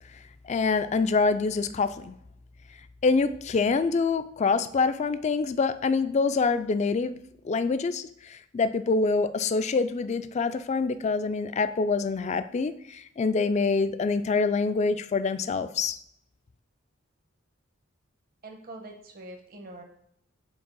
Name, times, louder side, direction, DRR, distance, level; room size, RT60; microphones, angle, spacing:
voice 1, 0.4-2.1 3.0-7.2 7.4-16.0, left 4 dB, 35° left, 11 dB, 0.3 m, -26 dB
voice 2, 18.4-19.8, right 2 dB, 45° right, 3 dB, 0.9 m, -44 dB
5.2 x 4.1 x 5.3 m, 0.73 s
head